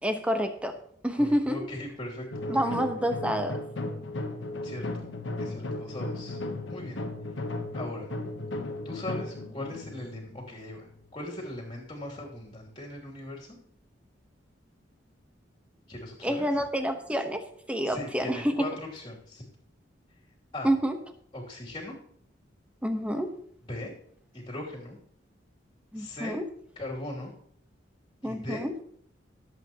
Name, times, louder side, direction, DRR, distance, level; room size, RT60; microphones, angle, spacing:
voice 1, 0.0-0.8 1.0-1.7 2.5-3.6 16.2-18.4 20.6-20.9 22.8-23.3 25.9-26.4 28.2-28.7, equal, 5° right, 6 dB, 1.1 m, -28 dB
voice 2, 1.1-2.9 4.6-4.9 5.4-6.4 6.7-7.0 7.7-8.1 8.8-13.6 15.9-16.5 17.8-19.4 20.5-20.7 21.3-21.9 23.7-23.9 24.3-25.0 25.9-26.4 26.8-27.3 28.2-28.6, left 1 dB, 25° left, -2 dB, 2.9 m, -39 dB
sound 1, 2.3-11.1, left 2 dB, 85° left, 1.1 m, -36 dB
19.5 x 7.9 x 3.0 m, 0.64 s
head